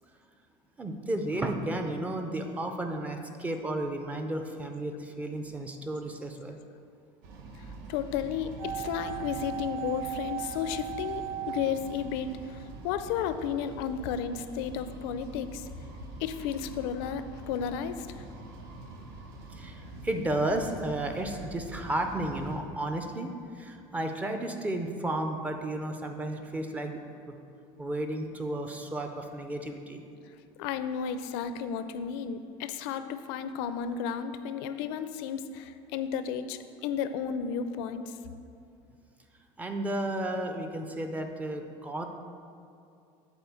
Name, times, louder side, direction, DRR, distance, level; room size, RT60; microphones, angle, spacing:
voice 1, 0.8-6.6 19.6-27.0 27.8-30.0 39.6-42.0, right 1 dB, 10° right, 5 dB, 0.4 m, -33 dB
sound 1, 7.2-22.6, right 2 dB, 85° right, 1.1 m, -45 dB
voice 2, 7.9-15.7 16.2-18.1 30.6-38.2, left 7 dB, 80° left, 10 dB, 0.5 m, -33 dB
sound 2, 8.6-12.7 12.9-13.0, right 10 dB, 55° right, 0.7 m, -37 dB
7.9 x 4.3 x 7.0 m, 2.5 s
cardioid pair, 165°, 12 cm